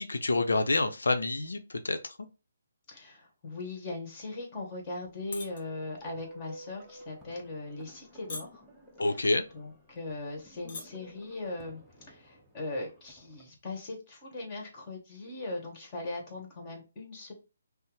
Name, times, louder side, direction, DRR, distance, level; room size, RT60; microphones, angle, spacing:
voice 1, 0.0-2.2 9.0-9.4, left 2 dB, 80° left, 7 dB, 0.6 m, -28 dB
voice 2, 2.9-8.6 9.5-11.8 12.1-17.3, left 2 dB, 30° left, 2 dB, 1.8 m, -39 dB
sound 1, 5.3-5.6 6.0-6.3 6.9-7.1 7.8-8.0 8.3-8.8 9.5-9.6 9.9-10.0 10.5-10.8 11.2-11.4, left 3 dB, 50° left, 1.3 m, -40 dB
sound 2, 6.0-13.5, equal, 5° right, 0.9 m, -52 dB
5.4 x 2.0 x 3.0 m, 0.31 s
figure-of-eight pair, 145°, 0 cm